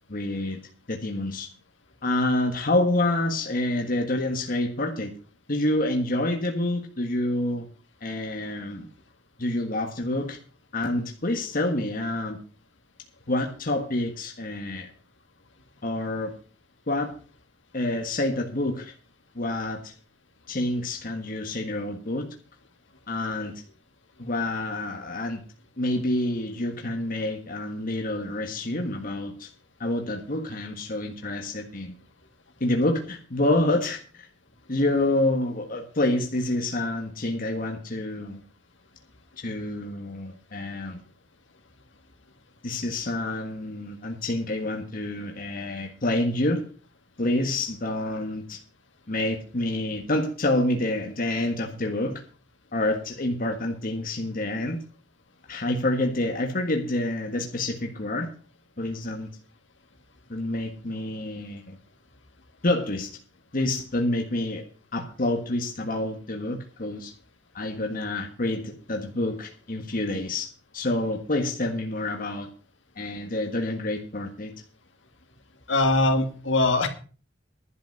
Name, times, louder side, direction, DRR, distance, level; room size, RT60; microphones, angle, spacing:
voice 1, 0.1-0.6 0.9-1.5 2.0-5.1 5.5-7.7 8.0-8.9 9.4-10.4 10.7-12.4 13.3-14.9 15.8-16.3 16.9-17.1 17.7-18.9 19.3-19.9 20.5-22.3 23.1-23.5 24.2-25.4 25.8-29.5 29.8-31.9 32.6-34.2 34.7-38.4 39.4-41.0 42.6-46.6 47.2-48.6 49.1-52.2 52.7-54.8 55.5-58.3 58.8-59.3 60.3-61.8 62.6-63.1 63.5-64.6 64.9-67.1 67.5-72.5 73.0-74.5, left 1 dB, 50° left, 3 dB, 1.6 m, -27 dB
voice 2, 75.7-76.9, left 2 dB, 80° left, 4 dB, 2.5 m, -21 dB
11.5 x 8.3 x 6.5 m, 0.39 s
head